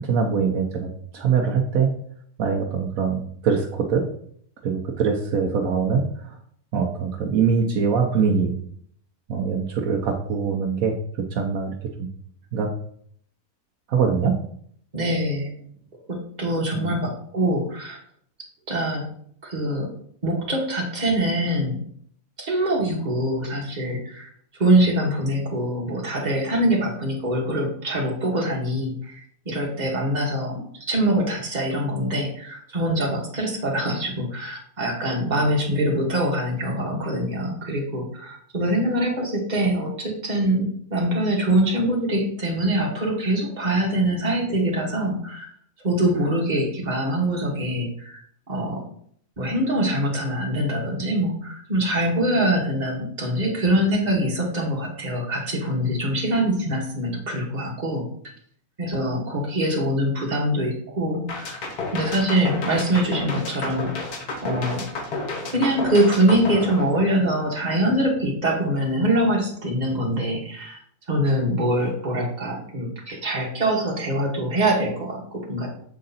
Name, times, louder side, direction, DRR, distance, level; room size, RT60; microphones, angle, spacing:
voice 1, 0.0-1.9 2.4-4.0 4.6-6.3 6.7-8.5 9.3-10.9 11.3-12.1 12.5-12.7 13.9-14.3 16.7-17.0, right 6 dB, 70° right, 1 dB, 1.2 m, -23 dB
voice 2, 14.9-15.5 16.1-18.0 18.7-19.0 19.4-19.9 20.2-21.8 22.4-24.3 24.6-45.5 45.8-48.2 48.5-48.8 49.4-58.0 58.8-61.6 61.9-64.1 64.4-64.8 65.5-70.8 71.1-75.7, right 1 dB, 30° right, -2 dB, 1.5 m, -24 dB
sound 1, 61.3-67.5, left 3 dB, 85° left, 1.6 m, -31 dB
7.6 x 3.8 x 4.1 m, 0.63 s
omnidirectional pair, 1.5 m